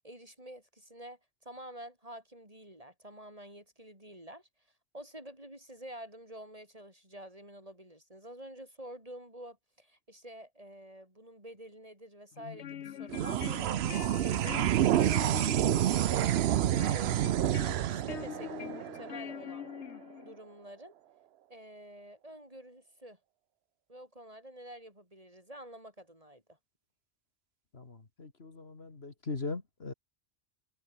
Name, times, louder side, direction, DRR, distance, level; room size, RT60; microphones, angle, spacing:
voice 1, 0.0-4.5 4.9-17.1 17.8-19.7 20.2-20.9 21.5-23.2 23.9-26.4, right 1 dB, 30° right, 7.7 m, -48 dB
sound 1, 12.3-20.4, left 10 dB, 80° left, 1.1 m, -44 dB
sound 2, 13.1-19.8, right 11 dB, 70° right, 0.8 m, -29 dB
voice 2, 27.7-29.9, left 3 dB, 60° left, 2.6 m, -40 dB
omnidirectional pair, 1.2 m